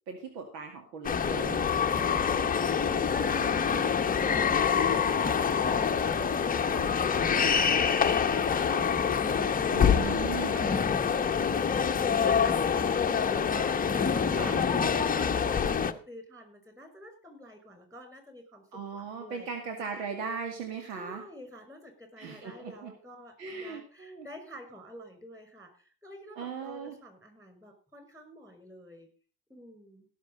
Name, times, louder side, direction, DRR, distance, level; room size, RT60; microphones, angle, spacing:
voice 1, 0.1-1.7 9.7-10.6 14.3-14.6 18.7-21.2 22.2-22.9 23.4-24.3 26.4-27.0, right 5 dB, 85° right, 5 dB, 2.2 m, -38 dB
sound 1, 1.0-15.9, left 6 dB, 15° left, 0.8 m, -26 dB
voice 2, 10.5-18.6 18.9-19.5 20.9-29.1 29.5-30.1, equal, 5° right, 5 dB, 5.6 m, -49 dB
17.0 x 6.7 x 5.4 m, 0.41 s
hypercardioid pair, 90°, 49 cm